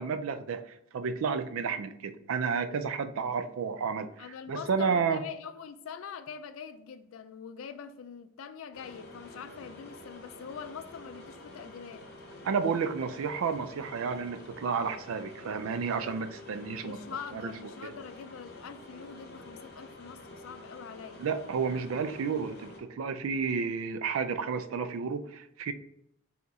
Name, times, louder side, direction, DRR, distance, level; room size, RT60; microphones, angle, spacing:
voice 1, 0.0-5.2 12.4-17.0 17.3-17.5 17.8-17.9 21.2-25.7, right 5 dB, 90° right, 0.4 m, -31 dB
voice 2, 4.2-12.1 16.8-21.2, left 7 dB, 80° left, 0.4 m, -44 dB
sound 1, 8.7-22.8, left 2 dB, 55° left, 0.8 m, -49 dB
3.9 x 2.9 x 3.5 m
head